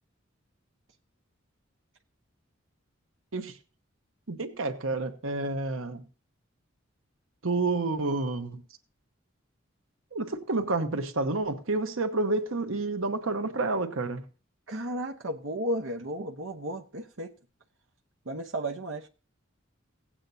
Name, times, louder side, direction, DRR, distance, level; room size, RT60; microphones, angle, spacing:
voice 1, 4.3-6.0 7.4-8.6 10.1-14.3, right 3 dB, 85° right, 1.1 m, -29 dB
voice 2, 14.7-17.3 18.3-19.1, right 1 dB, 70° right, 0.9 m, -33 dB
17.0 x 8.7 x 2.8 m
head